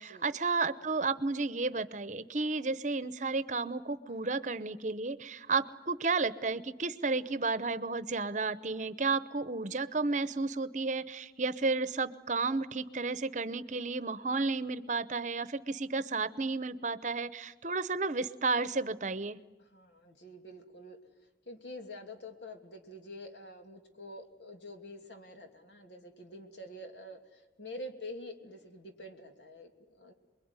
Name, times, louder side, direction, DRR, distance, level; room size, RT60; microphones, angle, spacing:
voice 1, 0.0-19.4, right 3 dB, 45° right, 15 dB, 0.9 m, -32 dB
voice 2, 19.6-21.0 21.5-30.1, left 1 dB, 75° left, 5 dB, 2.9 m, -47 dB
28.0 x 22.0 x 9.7 m, 1.1 s
head